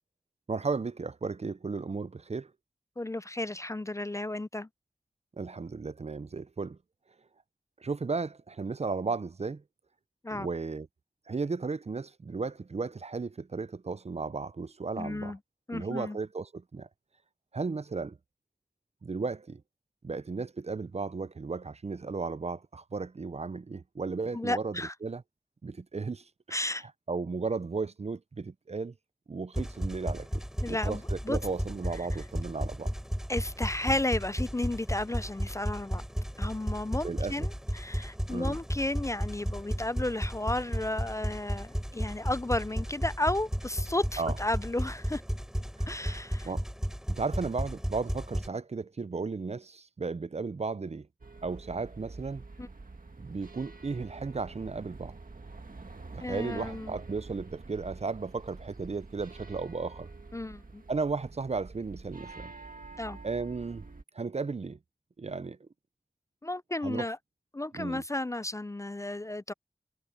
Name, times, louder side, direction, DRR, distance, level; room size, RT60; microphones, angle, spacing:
voice 1, 0.5-2.5 5.4-6.8 7.8-9.6 10.3-10.9 11.3-15.3 15.7-16.9 17.5-18.2 19.0-19.6 20.0-25.2 25.6-26.2 27.1-28.9 29.3-30.3 30.7-32.9 37.0-37.5 38.3-38.6 44.2-44.3 45.8-46.6 47.1-51.1 51.4-52.4 53.2-55.1 56.1-60.1 60.9-62.5 63.2-63.9 64.1-64.8 65.2-65.6 66.8-67.1 67.7-68.0, right 4 dB, 50° right, 0.4 m, -35 dB
voice 2, 3.0-4.7 10.2-10.5 15.0-15.4 15.7-16.2 24.3-24.9 26.5-26.9 30.6-31.4 33.3-36.0 36.4-45.2 45.9-46.5 52.6-52.7 56.2-57.0 60.3-60.8 63.0-63.2 66.4-67.2 67.5-69.5, left 1 dB, 20° left, 0.4 m, -33 dB
sound 1, 29.5-48.5, equal, 5° right, 3.4 m, -34 dB
sound 2, 51.2-64.0, right 3 dB, 80° right, 1.8 m, -47 dB
wide cardioid pair, 55°, 14 cm